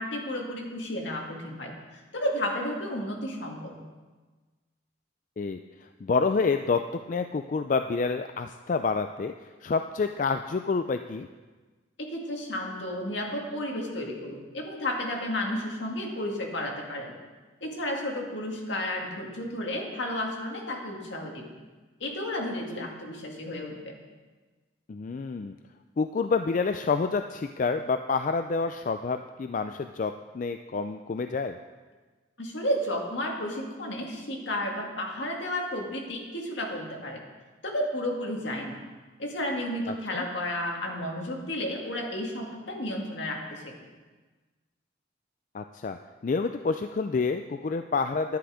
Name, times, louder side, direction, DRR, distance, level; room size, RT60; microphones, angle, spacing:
voice 1, 0.0-1.7 2.1-3.7 12.1-17.1 17.6-21.5 22.0-23.9 32.4-37.2 37.6-38.8 39.2-43.7, left 1 dB, 70° left, 0 dB, 2.0 m, -32 dB
voice 2, 6.0-11.3 22.8-22.9 24.9-25.6 26.0-31.6 39.9-40.2 45.5-48.4, left 4 dB, 40° left, 8 dB, 0.3 m, -28 dB
10.5 x 9.9 x 5.0 m, 1.3 s
head